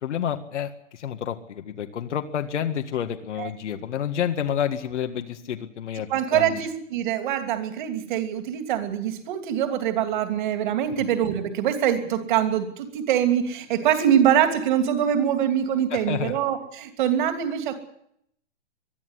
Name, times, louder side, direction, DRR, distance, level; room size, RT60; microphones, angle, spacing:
voice 1, 0.0-6.6 11.0-11.1 15.9-16.3, left 9 dB, 75° left, 6 dB, 1.9 m, -29 dB
voice 2, 6.1-17.8, right 10 dB, 40° right, 8 dB, 2.9 m, -24 dB
22.0 x 12.5 x 9.9 m, 0.72 s
hypercardioid pair, 165°, 36 cm